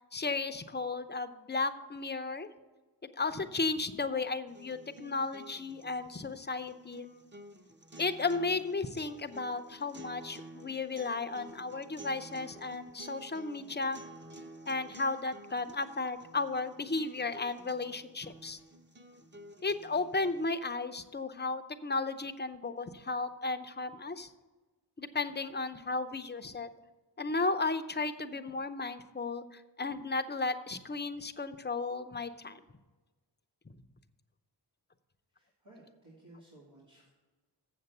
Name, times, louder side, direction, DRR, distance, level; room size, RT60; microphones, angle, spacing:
voice 1, 0.1-2.5 3.1-7.1 8.0-14.0 14.7-18.6 19.6-24.3 25.0-26.7 27.2-32.6 33.7-33.8, left 3 dB, 25° left, 9 dB, 0.6 m, -34 dB
sound 1, 4.5-20.5, right 1 dB, 25° right, 0.8 m, -52 dB
voice 2, 35.4-37.1, right 1 dB, 85° right, -7 dB, 2.3 m, -57 dB
7.3 x 7.0 x 6.7 m, 1.2 s
wide cardioid pair, 50°, 44 cm